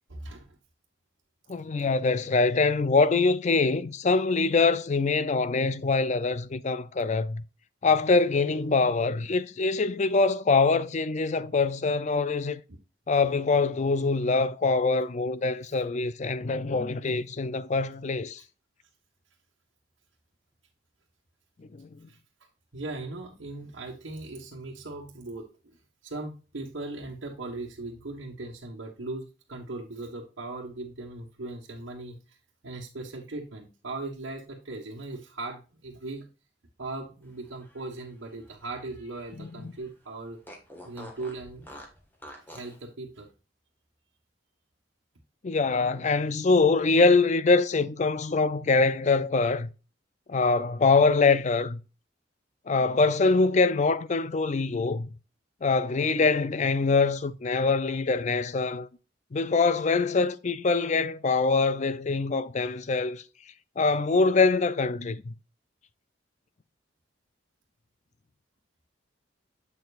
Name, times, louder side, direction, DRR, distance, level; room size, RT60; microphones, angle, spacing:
voice 1, 0.1-0.6 12.7-12.8 22.1-22.2 22.7-25.8 26.0-32.4 32.6-36.3 36.8-40.4 40.8-41.7 42.5-43.3, right 2 dB, 85° right, 1.4 m, -39 dB
voice 2, 1.5-7.4 7.8-12.6 13.1-18.4 21.7-22.1 39.4-39.7 45.4-49.7 50.3-51.8 52.7-55.1 55.6-58.9 59.3-63.2 63.8-65.3, left 4 dB, 40° left, 0.4 m, -24 dB
Fart, 37.4-39.5 39.8-39.9 40.4-42.8, equal, 10° left, 1.7 m, -48 dB
7.9 x 6.9 x 2.5 m
head